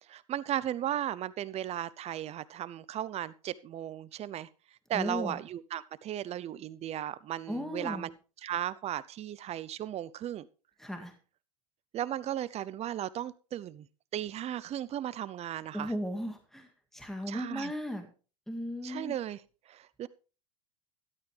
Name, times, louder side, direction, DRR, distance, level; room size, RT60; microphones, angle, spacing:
voice 1, 0.0-4.5 4.9-8.1 8.4-10.5 11.9-13.9 14.1-15.9 17.3-17.7 18.8-19.4 19.7-20.1, right 11 dB, 35° right, 18 dB, 0.7 m, -36 dB
voice 2, 4.9-5.4 7.5-8.1 10.8-11.1 15.7-18.1 18.5-19.1, equal, ahead, 5 dB, 1.9 m, -36 dB
13.0 x 11.5 x 3.4 m, 0.35 s
hypercardioid pair, 100°, 18 cm